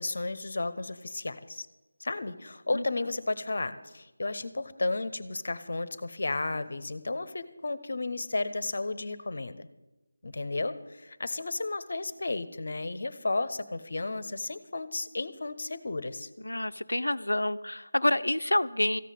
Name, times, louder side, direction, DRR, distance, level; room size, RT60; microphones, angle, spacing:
voice 1, 0.0-1.7 2.0-9.7 10.2-16.3, left 2 dB, 55° left, 14 dB, 1.0 m, -33 dB
voice 2, 16.4-19.0, left 1 dB, 80° left, 13 dB, 0.7 m, -28 dB
14.5 x 8.4 x 9.1 m, 1.0 s
figure-of-eight pair, 160°, 0 cm